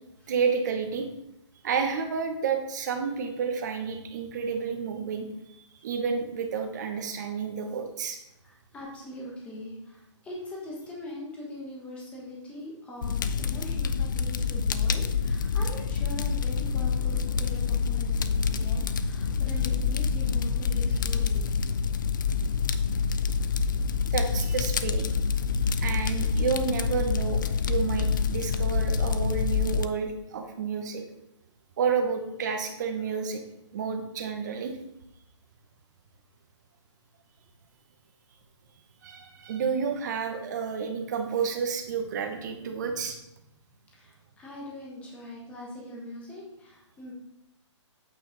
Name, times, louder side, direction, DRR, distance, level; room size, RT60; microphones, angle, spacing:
voice 1, 0.3-1.1 1.6-5.3 5.8-8.2 24.1-25.1 25.8-31.0 31.8-33.4 33.7-34.7 39.0-43.2, right 6 dB, 35° right, 5 dB, 1.1 m, -30 dB
voice 2, 8.4-21.5 43.9-47.1, left 1 dB, 10° left, -3 dB, 1.3 m, -42 dB
Fire, 13.0-29.9, left 5 dB, 40° left, 0.4 m, -27 dB
8.5 x 4.5 x 4.1 m, 0.86 s
hypercardioid pair, 165°, 16 cm